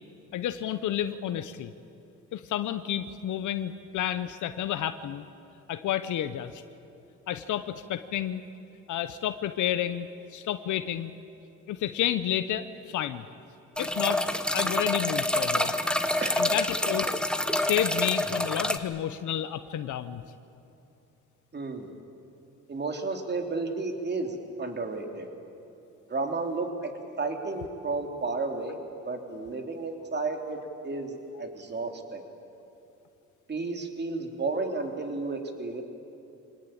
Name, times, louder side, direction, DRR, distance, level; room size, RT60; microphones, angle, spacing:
voice 1, 0.3-1.7 2.3-5.2 5.7-6.6 7.3-8.4 8.9-11.1 11.7-13.2 13.8-14.3 14.5-15.7 16.3-17.1 17.6-20.2, left 11 dB, 75° left, 11 dB, 0.9 m, -30 dB
sound 1, 13.8-18.8, left 1 dB, 5° left, 1.2 m, -27 dB
voice 2, 16.2-16.7 21.5-21.9 22.7-25.3 26.1-26.9 27.2-28.8 29.0-30.6 30.8-32.2 33.5-35.8, right 3 dB, 35° right, 4 dB, 3.1 m, -32 dB
24.0 x 19.0 x 8.8 m, 2.8 s
cardioid pair, 90°, 30 cm